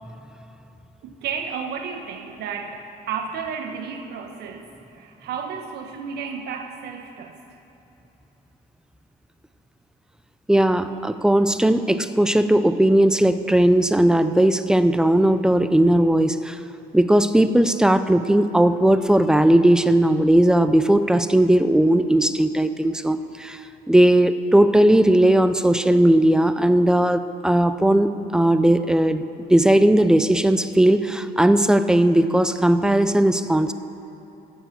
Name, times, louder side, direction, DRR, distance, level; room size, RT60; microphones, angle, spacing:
voice 1, 1.0-7.4, right 6 dB, 75° right, 5 dB, 1.1 m, -32 dB
voice 2, 10.5-16.6 16.9-23.6 23.9-29.2 29.5-33.7, right 1 dB, 5° right, 11 dB, 0.4 m, -17 dB
10.0 x 7.0 x 7.8 m, 3.0 s
cardioid pair, 110°, 17 cm